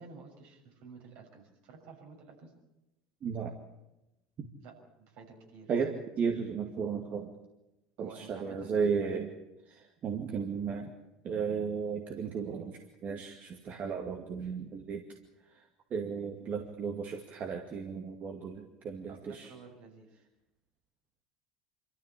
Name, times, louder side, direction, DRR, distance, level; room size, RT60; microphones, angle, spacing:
voice 1, 0.0-2.5 4.6-5.7 8.0-8.7 19.1-20.2, right 4 dB, 65° right, 1 dB, 6.5 m, -52 dB
voice 2, 3.2-3.6 4.4-4.5 5.7-7.3 8.0-9.3 9.7-10.9 11.2-15.0 15.9-19.5, right 6 dB, 45° right, 3 dB, 2.3 m, -34 dB
26.0 x 14.0 x 8.5 m, 0.96 s
hypercardioid pair, 75°, 4 cm